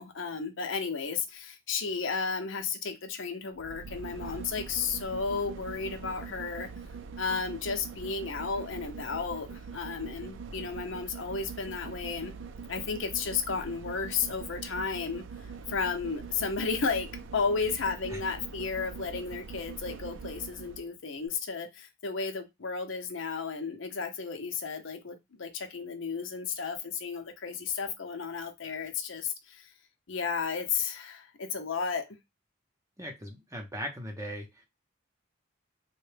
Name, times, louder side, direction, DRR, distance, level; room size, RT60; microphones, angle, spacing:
voice 1, 0.0-6.7 7.2-12.3 12.7-15.2 15.7-29.7 30.1-32.2, left 5 dB, 65° left, 0.7 m, -33 dB
sound 1, 3.5-20.9 21.3-21.4, right 5 dB, 65° right, 0.4 m, -43 dB
voice 2, 33.0-34.7, equal, 15° right, 0.7 m, -39 dB
3.6 x 2.2 x 3.3 m
head